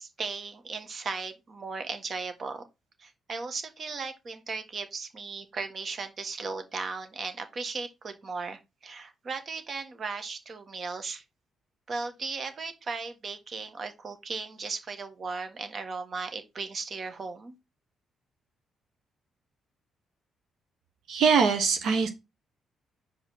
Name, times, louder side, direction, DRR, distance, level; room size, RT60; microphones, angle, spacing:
voice 1, 0.0-2.7 3.0-11.2 11.9-17.5, right 4 dB, 50° right, 1.5 m, -36 dB
voice 2, 21.1-22.1, right 5 dB, 75° right, 1.1 m, -22 dB
5.9 x 5.1 x 4.1 m
supercardioid pair, 50°, 0 cm